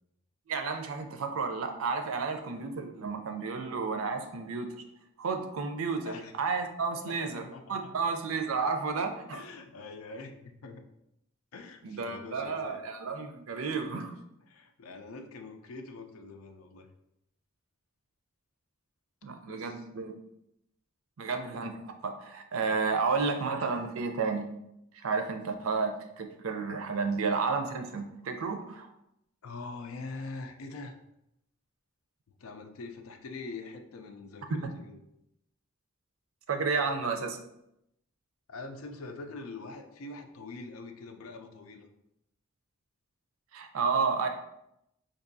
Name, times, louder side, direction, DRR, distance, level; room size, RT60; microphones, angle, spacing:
voice 1, 0.5-4.8 5.2-9.4 11.8-14.1 19.2-20.1 21.2-21.8 22.0-24.5 24.9-28.9 36.5-37.4 43.5-44.3, right 4 dB, 80° right, 7 dB, 0.5 m, -32 dB
voice 2, 7.1-7.9 9.3-10.9 11.5-12.8 14.5-16.9 19.5-19.8 29.4-31.0 32.4-35.0 37.0-37.3 38.5-41.9, left 3 dB, 85° left, 6 dB, 0.4 m, -44 dB
4.6 x 2.6 x 2.6 m, 0.81 s
head